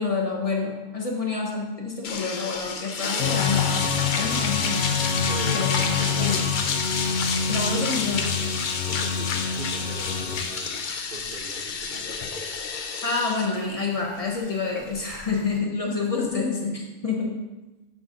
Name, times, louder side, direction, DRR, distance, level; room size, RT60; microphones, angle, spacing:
voice 1, 0.0-4.9 5.4-6.5 7.5-8.3 13.0-17.4, left 4 dB, 30° left, -1 dB, 1.3 m, -28 dB
sound 1, 2.0-15.6, left 5 dB, 50° left, 0.7 m, -29 dB
sound 2, 3.2-10.4, left 6 dB, 85° left, 1.1 m, -27 dB
voice 2, 5.3-6.5 8.9-10.7 11.1-12.0, right 3 dB, 55° right, 0 dB, 1.0 m, -39 dB
7.8 x 4.1 x 5.2 m, 1.1 s
omnidirectional pair, 1.2 m